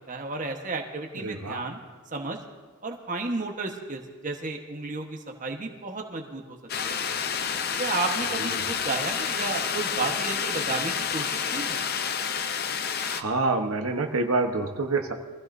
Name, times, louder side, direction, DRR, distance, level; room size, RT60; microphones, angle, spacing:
voice 1, 0.1-1.8 2.1-2.4 2.8-6.6 6.8-7.0 7.8-11.8, right 3 dB, 35° right, 2 dB, 1.2 m, -32 dB
voice 2, 1.2-1.6 8.4-8.7 13.0-15.1, right 3 dB, 75° right, 4 dB, 1.1 m, -27 dB
sound 1, 6.7-13.2, left 7 dB, 45° left, 0.6 m, -29 dB
23.5 x 16.0 x 2.7 m, 1.4 s
head